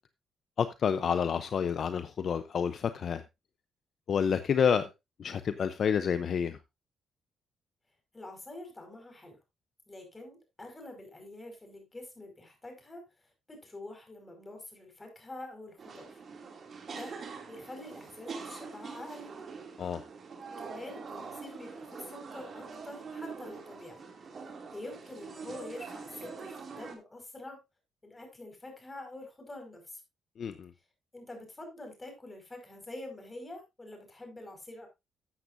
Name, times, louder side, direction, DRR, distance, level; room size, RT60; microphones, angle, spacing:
voice 1, 0.6-3.2 4.1-4.9 5.2-6.6 19.8-20.0 30.4-30.7, left 7 dB, 55° left, 0.7 m, -29 dB
voice 2, 8.1-9.4 9.9-13.0 13.5-16.2 16.9-17.1 17.5-19.3 20.6-24.0 24.7-27.6 28.0-30.0 31.1-34.9, left 1 dB, 20° left, 5.1 m, -46 dB
sound 1, 15.8-26.9, right 5 dB, 50° right, 2.6 m, -44 dB
13.5 x 8.0 x 2.6 m
cardioid pair, 90°, 0 cm